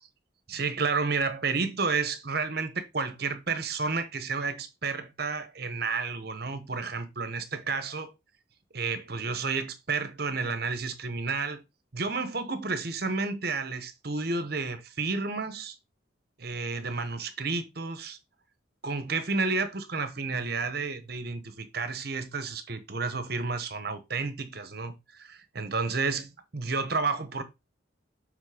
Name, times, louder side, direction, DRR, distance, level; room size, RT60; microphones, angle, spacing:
voice 1, 0.5-8.1 8.7-11.6 11.9-15.8 16.4-18.2 18.8-27.4, right 4 dB, 55° right, 1.1 m, -31 dB
7.3 x 3.7 x 5.1 m
head